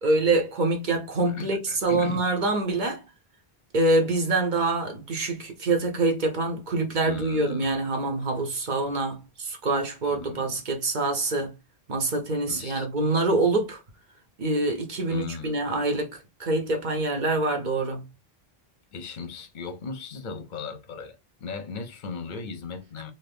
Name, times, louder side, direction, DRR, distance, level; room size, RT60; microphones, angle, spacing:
voice 1, 0.0-3.0 3.7-11.5 11.9-13.8 14.4-18.0, right 2 dB, 50° right, 0.9 m, -25 dB
voice 2, 1.3-2.2 7.0-7.6 10.1-10.6 12.5-12.9 15.1-15.6 18.9-23.1, left 5 dB, 55° left, 0.7 m, -37 dB
2.7 x 2.6 x 3.4 m
omnidirectional pair, 1.0 m